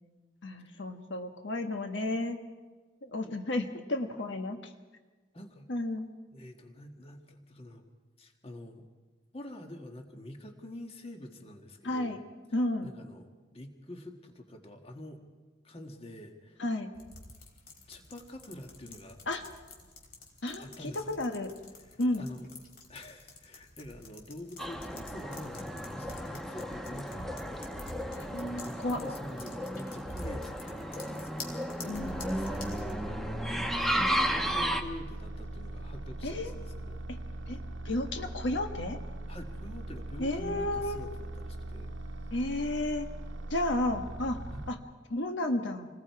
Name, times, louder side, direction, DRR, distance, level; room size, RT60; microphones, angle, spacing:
voice 1, 0.4-2.4 3.0-4.6 5.7-6.1 11.8-12.2 12.5-12.9 16.6-16.9 19.3-19.4 20.4-21.5 22.0-22.2 28.1-29.0 31.8-32.1 36.2-36.5 37.1-37.2 37.5-37.6 37.8-39.0 40.2-41.0 42.3-43.1 43.5-44.4 44.7-44.8 45.1-45.9, left 1 dB, 70° left, 5 dB, 1.4 m, -32 dB
voice 2, 5.3-5.7 6.3-7.8 8.2-8.9 9.3-12.2 12.8-15.2 15.6-16.6 17.9-19.2 20.6-21.2 21.8-22.5 22.9-27.7 28.4-31.6 31.8-37.0 39.3-41.9 44.5-44.6, left 1 dB, 30° left, 4 dB, 1.7 m, -46 dB
sound 1, 16.9-32.9, left 2 dB, 50° left, 3.3 m, -48 dB
sound 2, 24.6-34.8, equal, ahead, 0.9 m, -34 dB
sound 3, 31.9-44.7, right 1 dB, 80° right, 1.1 m, -40 dB
27.5 x 19.5 x 4.7 m, 1.3 s
head